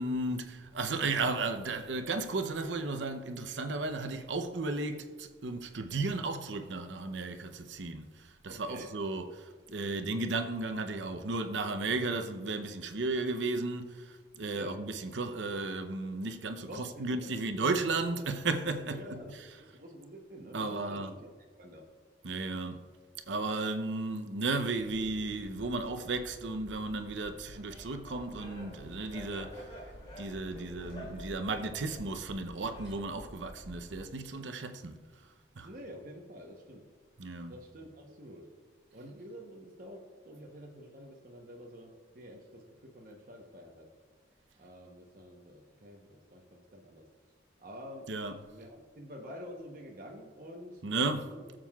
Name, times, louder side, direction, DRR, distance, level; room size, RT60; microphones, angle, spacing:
voice 1, 0.0-19.5 20.5-21.1 22.2-22.8 23.3-29.7 30.2-35.0 35.6-35.7 37.2-37.6 48.1-48.4 50.8-51.3, right 3 dB, 90° right, 0.7 m, -34 dB
voice 2, 8.5-8.9 14.5-14.8 16.7-17.4 18.9-21.3 21.6-21.9 35.6-36.9 37.5-38.5 38.9-43.9 44.6-47.1 47.6-48.1 48.5-50.8 51.3-51.4, equal, 50° right, 1.0 m, -48 dB
sound 1, 24.8-34.0, equal, 65° right, 2.1 m, -51 dB
Laughter, 27.5-33.4, equal, 30° left, 2.8 m, -50 dB
22.0 x 7.5 x 2.4 m
head